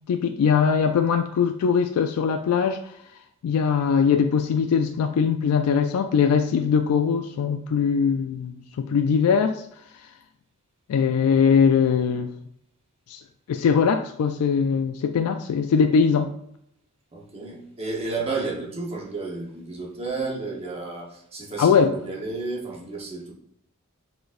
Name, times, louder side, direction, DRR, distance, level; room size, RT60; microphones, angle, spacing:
voice 1, 0.1-2.8 3.4-9.6 10.9-12.3 13.1-13.2 13.5-16.3 21.6-22.0, left 6 dB, 85° left, 7 dB, 0.3 m, -21 dB
voice 2, 17.1-23.3, right 3 dB, 25° right, -2 dB, 1.0 m, -32 dB
4.8 x 3.8 x 2.5 m, 0.72 s
head